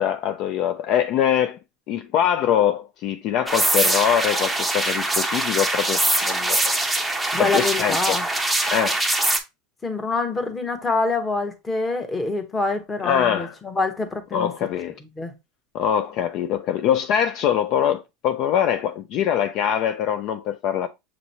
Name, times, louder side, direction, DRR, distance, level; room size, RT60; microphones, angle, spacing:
voice 1, 0.0-1.6 1.9-6.7 7.4-8.2 8.7-9.0 13.0-13.5 14.3-15.0 15.7-20.9, left 9 dB, 50° left, 0.4 m, -23 dB
sound 1, 3.5-9.4, right 2 dB, 5° right, 0.6 m, -23 dB
voice 2, 7.3-8.2 9.8-14.5 15.0-15.3, left 3 dB, 15° left, 0.9 m, -25 dB
6.2 x 2.9 x 2.6 m
supercardioid pair, 135°, 0 cm